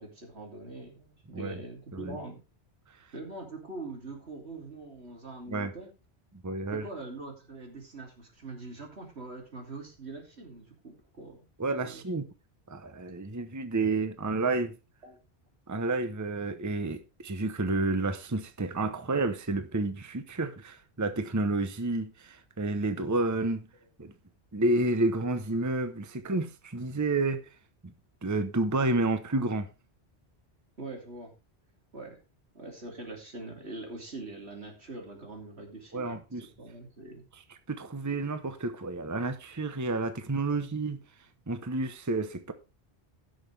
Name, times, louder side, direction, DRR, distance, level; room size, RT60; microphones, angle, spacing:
voice 1, 0.0-2.4 3.1-5.9 6.7-11.5 11.8-12.0 15.0-15.2 30.8-31.3 31.9-32.2 32.5-37.2 40.5-40.6, right 2 dB, 75° right, 3.2 m, -43 dB
voice 2, 6.4-6.8 11.6-12.3 12.7-14.7 15.7-23.7 24.0-24.1 24.5-27.4 27.8-27.9 28.2-29.7 35.9-36.5 37.5-41.0 41.5-42.5, right 2 dB, 20° right, 0.8 m, -30 dB
16.5 x 6.4 x 3.4 m
omnidirectional pair, 1.1 m